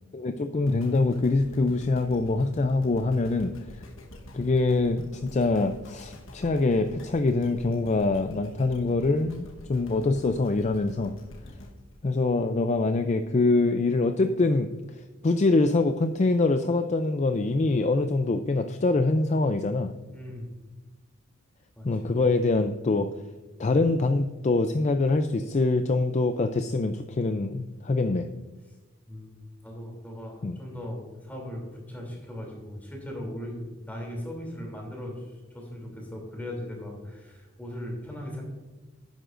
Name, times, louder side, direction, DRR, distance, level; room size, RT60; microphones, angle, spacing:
voice 1, 0.1-3.5 4.3-11.1 12.0-14.7 15.2-19.9 21.8-23.1 23.6-28.3 30.4-30.6, left 3 dB, 35° left, 8 dB, 0.4 m, -24 dB
sound 1, 0.7-12.9 13.4-13.5, left 1 dB, 75° left, 1.2 m, -46 dB
voice 2, 20.1-20.5 21.8-22.1 29.1-29.3 29.6-35.3 35.5-38.4, left 1 dB, 10° left, -1 dB, 2.8 m, -38 dB
11.5 x 9.1 x 2.5 m, 1.2 s
head